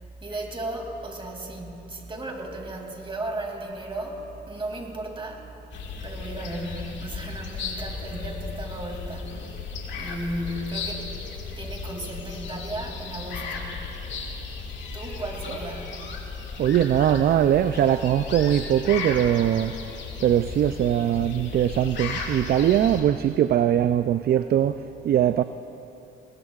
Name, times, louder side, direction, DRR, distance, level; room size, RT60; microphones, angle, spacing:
voice 1, 0.2-5.5 6.0-9.5 10.0-11.1 11.6-13.8 14.9-16.0, right 1 dB, 25° right, 2.6 m, -35 dB
sound 1, 5.7-23.0, left 5 dB, 65° left, 2.1 m, -35 dB
voice 2, 16.6-19.8 20.2-25.4, right 10 dB, 50° right, 0.4 m, -21 dB
20.0 x 20.0 x 2.4 m
cardioid pair, 90°, 20 cm